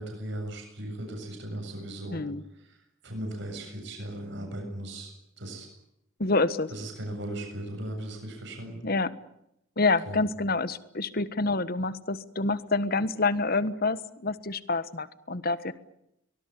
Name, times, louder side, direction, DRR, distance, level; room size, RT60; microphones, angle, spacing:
voice 1, 0.0-2.2 2.5-2.8 3.0-5.7 6.7-8.8 10.1-10.2, right 1 dB, 60° right, 2 dB, 7.5 m, -37 dB
voice 2, 2.1-2.4 6.2-6.7 8.8-9.1 9.8-15.7, left 3 dB, 45° left, 15 dB, 1.4 m, -27 dB
23.5 x 20.5 x 9.9 m, 0.82 s
head